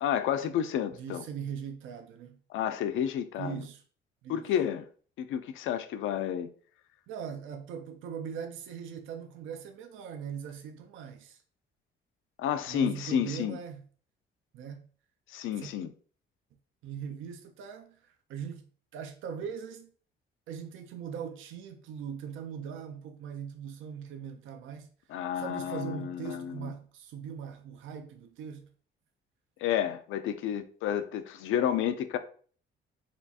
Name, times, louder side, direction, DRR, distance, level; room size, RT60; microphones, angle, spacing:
voice 1, 0.0-1.2 2.5-3.7 4.3-4.8 5.2-6.5 12.4-13.6 15.3-15.9 25.1-26.7 29.6-32.2, left 9 dB, 80° left, 0.4 m, -30 dB
voice 2, 0.9-2.4 3.4-3.8 4.2-4.5 7.1-11.4 12.7-13.8 14.5-14.8 15.6-15.7 16.8-18.6 18.9-19.9 20.5-24.9 25.4-28.7, right 7 dB, 80° right, 0.5 m, -40 dB
4.3 x 2.4 x 2.7 m
cardioid pair, 90°, 20 cm